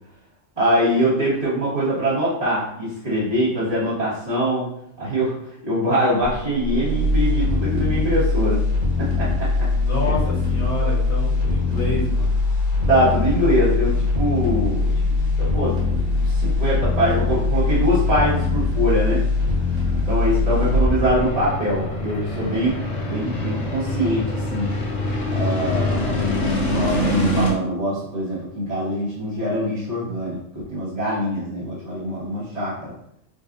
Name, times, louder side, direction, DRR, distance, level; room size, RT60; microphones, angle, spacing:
voice 1, 0.6-4.7 5.0-8.6 9.0-9.7 10.0-10.1 12.9-14.9 15.4-15.8 16.1-19.2 20.1-22.7 23.1-24.7 25.3-26.3 26.7-32.9, equal, 30° right, -12 dB, 1.2 m, -23 dB
sound 1, 6.2-22.3 22.6-22.7, left 3 dB, 85° right, 1.9 m, -21 dB
voice 2, 9.7-12.4, left 1 dB, 90° left, -7 dB, 1.7 m, -28 dB
sound 2, 9.7-27.5, left 1 dB, 35° left, 0.7 m, -28 dB
5.1 x 2.3 x 2.5 m, 0.76 s
omnidirectional pair, 1.4 m